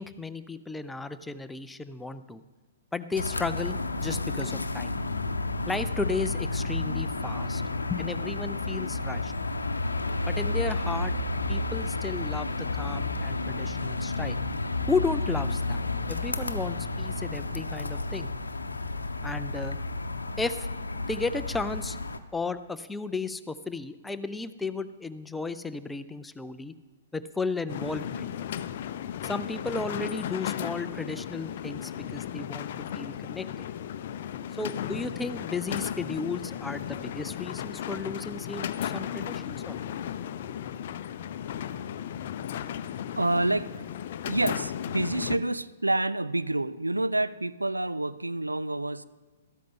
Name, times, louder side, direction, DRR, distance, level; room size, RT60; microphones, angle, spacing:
voice 1, 0.0-2.4 2.9-4.9 5.7-7.6 7.9-9.3 10.3-11.1 11.5-14.4 14.9-18.3 19.2-19.8 20.4-20.7 21.1-22.0 22.3-26.7 27.1-28.3 29.2-33.7 34.5-39.8, left 3 dB, 5° left, 12 dB, 0.5 m, -34 dB
sound 1, 3.2-22.2, left 2 dB, 80° left, 0.8 m, -31 dB
sound 2, 27.7-45.4, left 10 dB, 50° left, 0.5 m, -35 dB
voice 2, 43.2-43.8 44.3-49.0, right 2 dB, 90° right, 15 dB, 0.4 m, -28 dB
13.5 x 12.5 x 3.7 m, 1.2 s
figure-of-eight pair, 120°, 0 cm